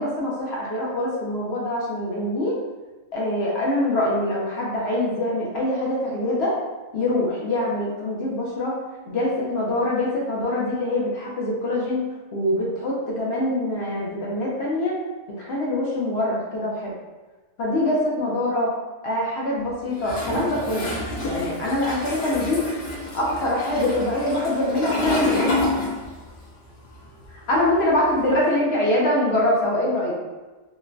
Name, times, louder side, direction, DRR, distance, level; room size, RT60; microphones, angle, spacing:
voice 1, 0.0-2.5 3.1-6.6 6.9-8.8 9.1-12.0 12.3-15.0 15.4-16.9 17.6-18.7 19.0-20.9 21.2-22.6 23.1-25.6 27.3-30.1, left 1 dB, 60° left, -4 dB, 0.8 m, -24 dB
Toilet flush, 20.0-26.4 26.7-28.3, left 2 dB, 90° left, 1.3 m, -28 dB
3.1 x 2.2 x 2.4 m, 1.2 s
omnidirectional pair, 1.3 m